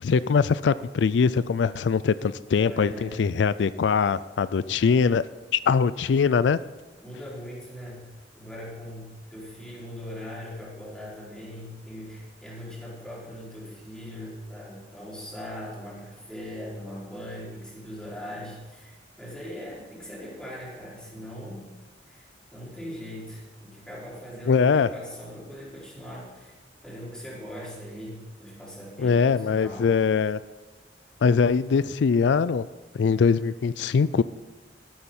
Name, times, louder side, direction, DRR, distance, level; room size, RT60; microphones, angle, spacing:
voice 1, 0.0-5.2 5.5-6.6 24.5-24.9 29.0-30.4 31.2-32.6 32.9-34.2, left 5 dB, 85° left, 16 dB, 0.4 m, -22 dB
voice 2, 2.7-3.3 7.0-8.1 8.3-21.7 22.1-26.6 26.8-29.9, equal, 5° left, -7 dB, 4.7 m, -40 dB
12.5 x 12.0 x 4.4 m, 1.2 s
head